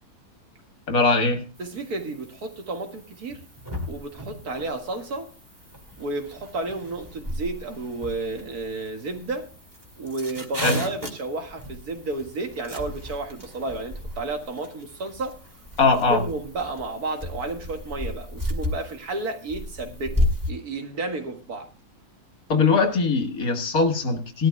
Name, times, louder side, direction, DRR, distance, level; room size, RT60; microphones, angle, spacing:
voice 1, 0.9-1.4 10.6-10.8 15.8-16.2 22.5-24.5, left 4 dB, 70° left, 2.0 m, -21 dB
sound 1, 1.6-20.5, left 1 dB, 15° right, 1.9 m, -34 dB
voice 2, 1.6-3.4 3.9-5.3 6.0-9.5 10.0-15.4 16.1-21.7, right 2 dB, 80° right, 2.3 m, -32 dB
19.0 x 12.5 x 2.2 m
omnidirectional pair, 1.6 m